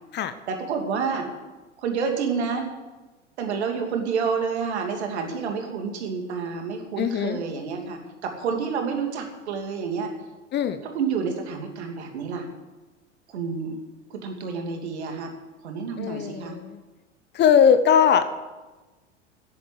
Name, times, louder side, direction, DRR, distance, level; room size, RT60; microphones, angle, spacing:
voice 1, 0.5-1.3 1.8-2.7 3.4-10.1 10.8-12.5 13.3-13.8 14.1-15.3 15.6-16.6, right 5 dB, 65° right, 3 dB, 2.8 m, -29 dB
voice 2, 7.0-7.4 10.5-10.8 16.0-16.8 17.3-18.3, left 7 dB, 30° left, 11 dB, 1.0 m, -20 dB
10.5 x 10.0 x 9.9 m, 1.2 s
figure-of-eight pair, 80°, 36 cm